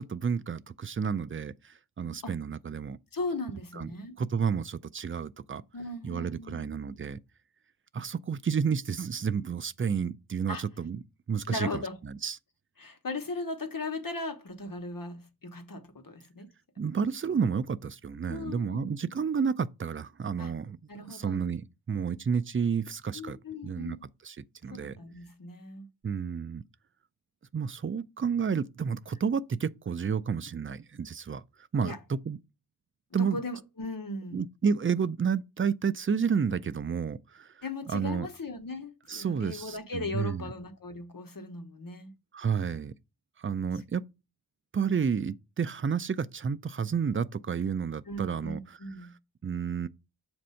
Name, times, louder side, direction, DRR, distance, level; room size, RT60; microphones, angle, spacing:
voice 1, 0.0-3.0 3.8-3.9 4.2-5.6 6.0-7.2 7.9-11.0 11.3-11.8 12.2-12.4 16.8-23.4 23.6-24.0 24.2-24.4 24.6-25.0 26.0-26.6 27.5-31.4 31.7-32.4 33.1-33.4 34.3-37.5 37.9-38.3 39.1-40.4 42.3-42.9 43.4-44.1 44.7-48.6 49.4-49.9, right 6 dB, 35° right, 0.4 m, -30 dB
voice 2, 2.0-2.4 3.1-4.1 5.7-6.7 10.5-10.6 11.5-12.0 12.8-16.5 18.3-18.9 20.4-20.5 20.9-21.4 23.1-24.0 24.7-25.9 31.8-32.0 33.2-34.4 37.6-42.1 48.0-49.2, left 2 dB, 60° left, 1.0 m, -38 dB
7.2 x 2.6 x 5.5 m
wide cardioid pair, 50°, 38 cm